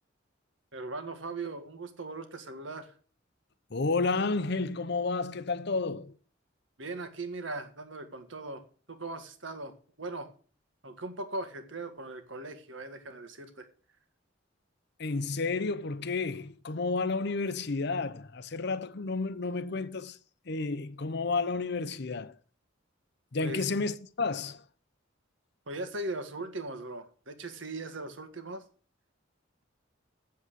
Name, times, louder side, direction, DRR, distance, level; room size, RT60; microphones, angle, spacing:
voice 1, 0.7-2.9 6.8-10.3 10.8-13.7 23.4-23.7 25.7-28.6, right 2 dB, 70° right, 1.8 m, -39 dB
voice 2, 3.7-6.1 15.0-20.2 20.5-22.4 23.3-24.6, left 3 dB, 60° left, 0.7 m, -31 dB
8.3 x 7.5 x 8.0 m
head